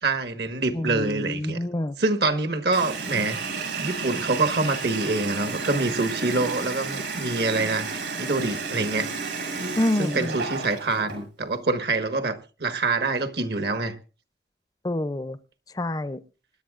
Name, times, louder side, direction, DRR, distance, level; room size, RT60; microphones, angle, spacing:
voice 1, 0.0-1.6 2.0-3.4 3.8-9.1 10.0-13.9, right 3 dB, 65° right, 1.4 m, -26 dB
voice 2, 0.7-1.9 9.8-10.3 14.8-15.4 15.8-16.2, left 1 dB, 20° left, 0.5 m, -27 dB
Water tap faucet, 2.7-11.2, right 4 dB, 80° right, 6.2 m, -32 dB
26.0 x 10.5 x 2.5 m
head